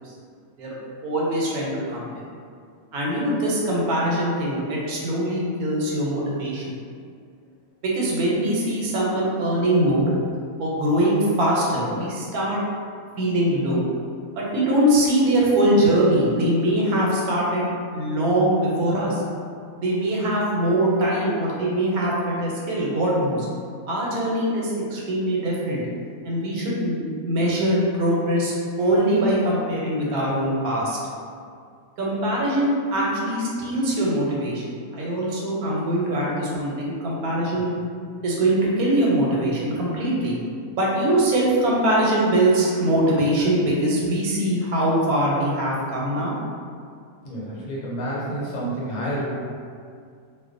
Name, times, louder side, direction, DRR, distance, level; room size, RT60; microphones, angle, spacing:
voice 1, 1.0-2.1 2.9-6.7 7.8-10.1 10.6-12.6 13.2-13.8 14.4-19.2 19.8-23.5 23.9-25.8 26.2-28.5 28.8-31.0 32.0-37.7 38.2-40.4 40.8-46.3, right 1 dB, 90° right, -4 dB, 1.1 m, -22 dB
voice 2, 47.2-49.3, right 1 dB, 80° left, -6 dB, 1.1 m, -29 dB
2.4 x 2.2 x 2.4 m, 2.2 s
omnidirectional pair, 1.5 m